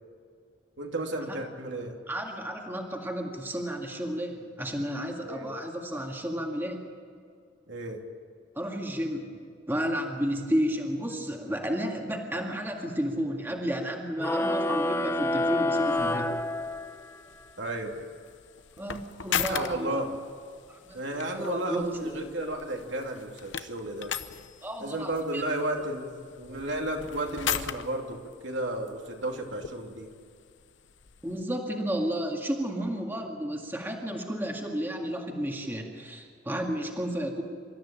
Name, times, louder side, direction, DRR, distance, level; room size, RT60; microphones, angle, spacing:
voice 1, 0.8-1.9 5.2-5.5 7.7-8.0 17.6-17.9 19.3-20.2 20.9-24.1 24.8-30.1, right 1 dB, 75° right, 1 dB, 2.9 m, -33 dB
voice 2, 2.1-6.8 8.6-9.4 9.7-16.3 18.8-20.0 20.9-22.1 24.6-25.4 31.2-37.4, equal, 10° right, 1 dB, 1.9 m, -32 dB
sound 1, 14.2-17.2, left 1 dB, 15° left, 0.8 m, -28 dB
sound 2, 15.9-31.4, left 9 dB, 70° left, 0.8 m, -39 dB
26.5 x 13.5 x 8.8 m, 2.2 s
head